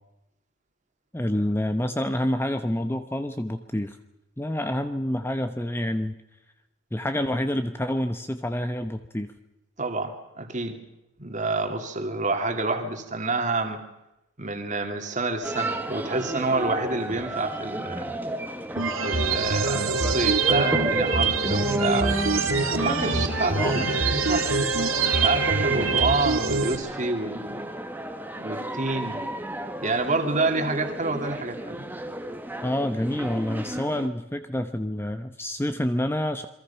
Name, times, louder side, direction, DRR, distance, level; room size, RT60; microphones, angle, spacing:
voice 1, 1.1-4.0 4.4-6.2 6.9-9.3 22.9-23.2 23.6-23.9 32.6-36.5, left 1 dB, 10° left, 8 dB, 0.9 m, -28 dB
voice 2, 9.8-10.8 11.2-13.8 14.4-18.1 19.0-22.2 22.7-24.7 25.2-27.7 28.4-29.2 29.8-31.9, right 3 dB, 35° right, 5 dB, 2.7 m, -28 dB
sound 1, 15.4-34.1, right 1 dB, 10° right, 1.7 m, -33 dB
sound 2, 18.8-26.8, right 4 dB, 80° right, 2.1 m, -24 dB
sound 3, 21.6-25.8, equal, 45° left, 3.1 m, -40 dB
28.0 x 23.0 x 5.8 m, 0.89 s
head